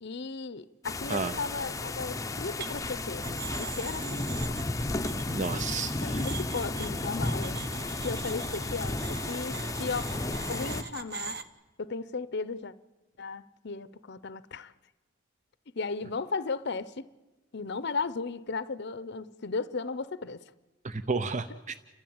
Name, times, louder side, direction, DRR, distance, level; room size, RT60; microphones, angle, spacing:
voice 1, 0.0-4.5 5.8-7.6 8.0-10.0 10.5-11.4 11.8-12.7 13.2-14.7 15.8-17.1 17.5-20.4, left 4 dB, 60° left, 0.7 m, -35 dB
sound 1, 0.8-10.8, left 2 dB, 15° left, 0.7 m, -33 dB
sound 2, 2.6-3.0 3.2-11.4, right 5 dB, 55° right, 1.2 m, -42 dB
voice 2, 5.3-6.2 20.8-21.7, right 4 dB, 40° right, 0.7 m, -32 dB
30.0 x 13.5 x 8.8 m
head